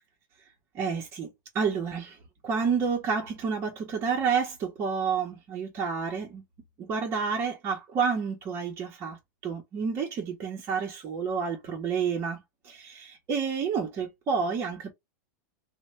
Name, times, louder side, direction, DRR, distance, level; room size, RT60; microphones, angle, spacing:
voice 1, 0.7-1.3 1.5-2.2 2.4-6.4 6.8-9.2 9.4-12.4 12.6-14.9, right 6 dB, 25° right, 0.8 m, -29 dB
3.1 x 2.2 x 3.1 m
supercardioid pair, 160°, 10 cm